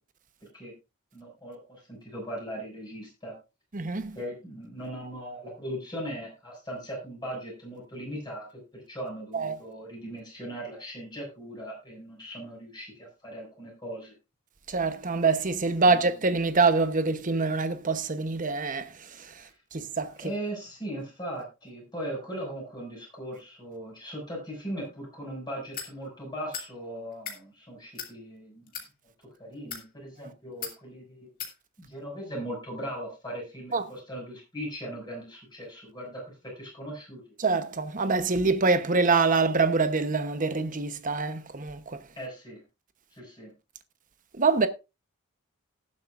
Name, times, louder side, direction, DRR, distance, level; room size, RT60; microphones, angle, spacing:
voice 1, 1.1-3.3 4.1-8.4 8.7-14.1 15.8-16.1 19.4-19.5 20.2-28.6 29.4-31.3 31.8-37.2 42.2-42.6 43.1-43.5, right 1 dB, 20° left, 6.3 m, -39 dB
voice 2, 3.7-4.2 9.3-9.6 14.7-19.3 19.7-20.1 33.7-33.8 37.4-42.0 44.3-44.7, right 4 dB, 40° right, 1.0 m, -25 dB
sound 1, 25.7-25.9 26.5-26.7 27.1-27.4 27.9-28.1 28.7-28.9 29.6-29.9 30.6-30.8 31.4-31.5, left 7 dB, 40° left, 2.5 m, -37 dB
19.0 x 7.6 x 2.5 m
head